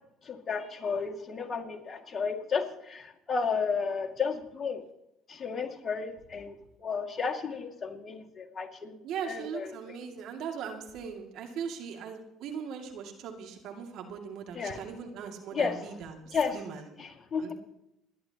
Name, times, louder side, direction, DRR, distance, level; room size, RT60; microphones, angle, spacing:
voice 1, 0.3-4.8 5.3-6.5 6.8-9.0 9.2-9.7 14.5-14.8 15.5-15.8 16.3-16.6 17.0-17.5, left 5 dB, 35° left, 4 dB, 2.2 m, -32 dB
voice 2, 9.0-16.9 17.4-17.5, right 7 dB, 65° right, 3 dB, 2.3 m, -39 dB
27.0 x 11.0 x 2.9 m, 0.87 s
hypercardioid pair, 70°, 0 cm